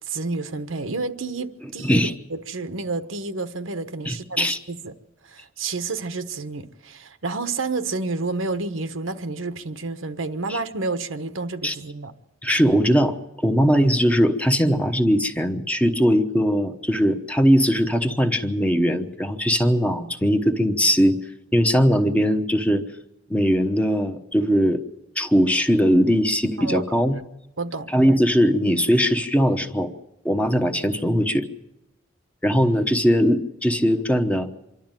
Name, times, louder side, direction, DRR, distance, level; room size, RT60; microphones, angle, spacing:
voice 1, 0.0-2.0 2.3-4.9 5.2-12.1 26.6-27.1 27.6-27.9, right 3 dB, 85° right, 1.2 m, -30 dB
voice 2, 1.8-2.1 4.0-4.6 10.5-10.6 11.6-11.7 12.4-13.2 13.4-21.2 21.5-22.8 23.3-24.8 25.2-27.1 27.9-29.9 30.2-31.5 32.4-34.5, equal, 5° left, 1.0 m, -20 dB
26.0 x 12.0 x 9.0 m
head